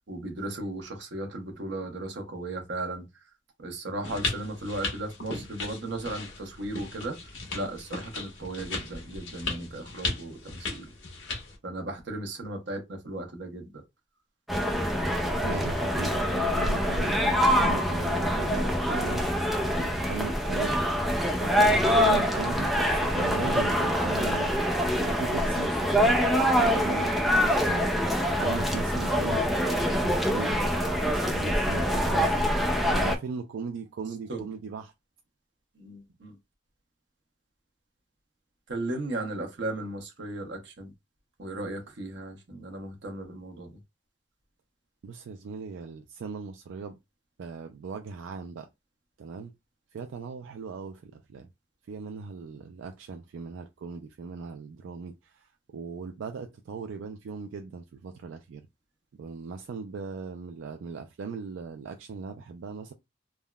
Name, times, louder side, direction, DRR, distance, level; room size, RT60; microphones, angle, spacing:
voice 1, 0.1-3.3 3.6-7.2 7.5-10.9 11.6-13.8 34.3-34.5 35.7-36.4 38.7-40.9 41.4-43.8, right 2 dB, 65° right, 0.9 m, -36 dB
sound 1, 4.0-11.6, left 3 dB, 90° left, 1.2 m, -36 dB
sound 2, 14.5-33.2, equal, ahead, 0.4 m, -25 dB
voice 2, 15.4-19.2 19.6-20.8 21.3-34.9 45.0-47.0 47.4-48.7 49.2-49.5 49.9-51.5 51.9-58.6 59.2-62.9, right 5 dB, 90° right, 0.3 m, -39 dB
3.5 x 2.1 x 2.3 m
head